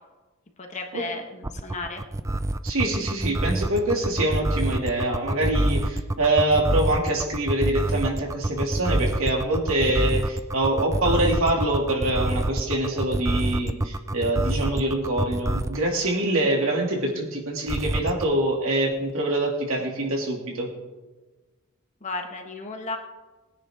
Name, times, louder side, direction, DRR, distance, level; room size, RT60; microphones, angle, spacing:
voice 1, 0.6-2.0 22.0-23.0, left 3 dB, 35° left, 3 dB, 1.5 m, -34 dB
sound 1, 1.4-15.8 17.7-18.3, right 1 dB, 15° right, 0.4 m, -25 dB
voice 2, 2.6-20.7, right 1 dB, 70° right, -1 dB, 2.8 m, -25 dB
20.5 x 10.0 x 3.7 m, 1.2 s
head